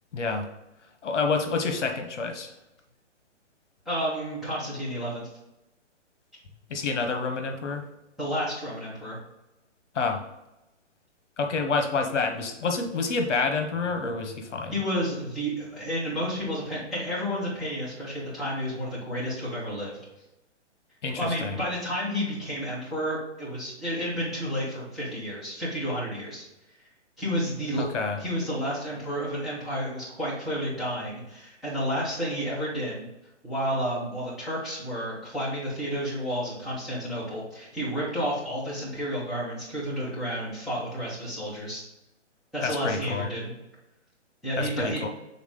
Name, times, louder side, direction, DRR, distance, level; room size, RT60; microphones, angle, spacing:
voice 1, 0.1-0.5 1.0-2.5 6.7-7.8 9.9-10.2 11.4-14.7 21.0-21.6 27.8-28.2 42.6-43.3 44.6-45.1, left 4 dB, 75° left, 5 dB, 1.2 m, -28 dB
voice 2, 3.8-5.3 8.2-9.2 14.7-20.0 21.1-26.4 27.2-27.8 28.2-33.0 33.4-41.8 42.5-43.5 44.4-45.0, equal, ahead, -10 dB, 1.5 m, -31 dB
7.3 x 3.9 x 3.7 m, 0.93 s
hypercardioid pair, 160°, 36 cm